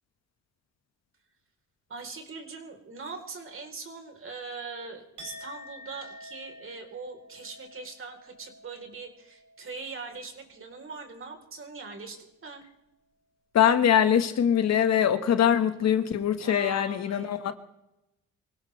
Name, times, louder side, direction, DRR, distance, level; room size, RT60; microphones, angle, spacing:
voice 1, 1.9-12.7 16.4-17.3, right 4 dB, 45° right, 3.9 m, -41 dB
Chink clink, 5.2-11.1 11.4-11.8, left 1 dB, 80° right, 5.9 m, -50 dB
voice 2, 13.5-17.5, left 9 dB, 60° left, 1.5 m, -23 dB
24.5 x 17.0 x 3.3 m
cardioid pair, 90°, 30 cm